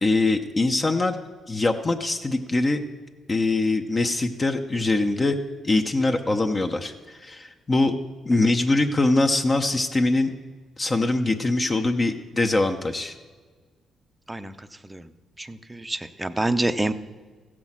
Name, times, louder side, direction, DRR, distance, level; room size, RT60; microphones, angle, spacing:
voice 1, 0.0-1.2 1.5-2.8 3.3-5.4 5.6-8.0 8.2-10.3 10.8-13.1, left 2 dB, 30° left, 5 dB, 0.7 m, -23 dB
voice 2, 15.4-16.9, right 2 dB, 10° right, 11 dB, 0.6 m, -27 dB
15.0 x 6.2 x 7.3 m, 1.4 s
cardioid pair, 90°, 0 cm